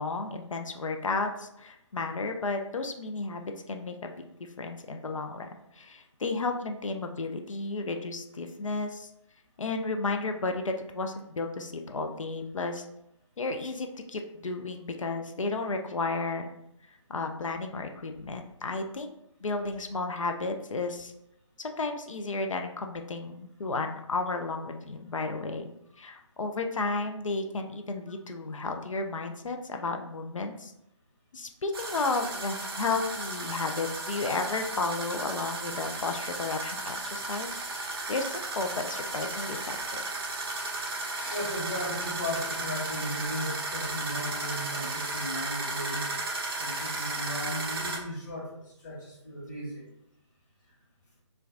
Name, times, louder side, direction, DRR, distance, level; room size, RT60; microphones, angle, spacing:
voice 1, 0.0-4.2 4.6-5.5 5.7-9.1 9.6-12.9 13.4-16.5 17.1-19.1 19.4-21.1 21.6-25.7 26.0-30.7 31.3-40.0 41.1-41.4, left 3 dB, 90° left, 4 dB, 0.4 m, -33 dB
sound 1, 31.7-48.0, right 2 dB, 50° right, 0.5 m, -34 dB
voice 2, 40.7-46.1 46.6-49.8, equal, 40° left, -6 dB, 1.1 m, -36 dB
2.4 x 2.2 x 2.4 m, 0.82 s
figure-of-eight pair, 150°, 16 cm